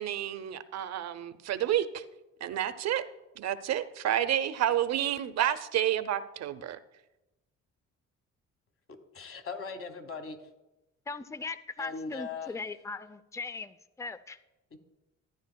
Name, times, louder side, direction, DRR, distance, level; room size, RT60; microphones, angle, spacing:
voice 1, 0.0-2.0 2.4-3.0 3.4-6.8, right 11 dB, 60° right, 0.6 m, -30 dB
voice 2, 9.1-10.4 11.8-12.5 14.7-14.8, left 5 dB, 45° left, 1.3 m, -39 dB
voice 3, 11.1-14.4, left 3 dB, 10° left, 0.4 m, -39 dB
14.0 x 9.8 x 2.2 m
cardioid pair, 90°, 30 cm